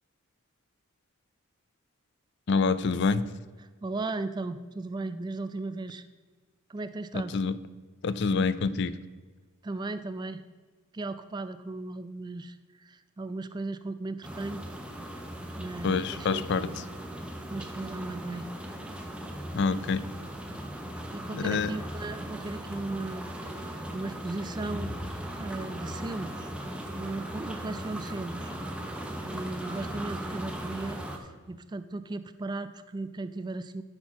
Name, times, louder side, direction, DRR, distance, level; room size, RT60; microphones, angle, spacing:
voice 1, 2.5-3.3 7.1-7.6 8.0-8.9 15.8-16.8 19.5-20.1 21.3-21.7, left 4 dB, 55° left, 15 dB, 0.4 m, -27 dB
voice 2, 3.8-6.0 6.7-7.4 9.6-10.4 10.9-14.6 15.6-16.8 17.5-18.5 21.1-24.9 25.4-26.5 26.9-28.5 29.3-33.8, right 2 dB, 20° right, 12 dB, 0.3 m, -36 dB
sound 1, 14.2-31.2, right 1 dB, 5° right, 0.8 m, -38 dB
12.5 x 4.5 x 5.8 m, 1.4 s
head